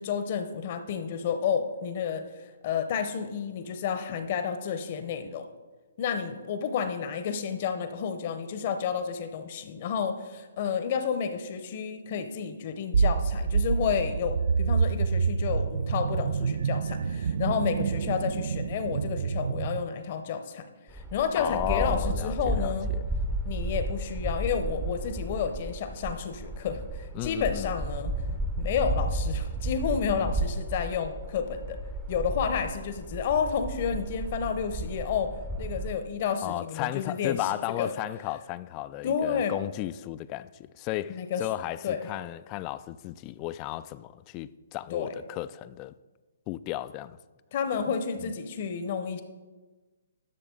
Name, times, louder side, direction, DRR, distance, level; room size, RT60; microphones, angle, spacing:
voice 1, 0.0-5.5 6.0-22.9 23.4-28.1 28.6-31.8 32.1-35.3 35.6-37.4 37.8-37.9 39.0-39.5 41.1-41.4 41.8-42.0 44.9-45.1 47.5-49.2, left 7 dB, 45° left, 0.8 m, -30 dB
sound 1, 12.9-19.8, right 5 dB, 65° right, 0.3 m, -27 dB
sound 2, 20.9-35.9, right 2 dB, 10° right, 0.7 m, -33 dB
voice 2, 21.4-23.0 27.1-27.7 36.4-45.9 46.5-47.2 47.9-48.0 48.2-48.3, left 15 dB, 30° left, 0.3 m, -34 dB
11.5 x 6.6 x 3.9 m
hypercardioid pair, 135°, 0 cm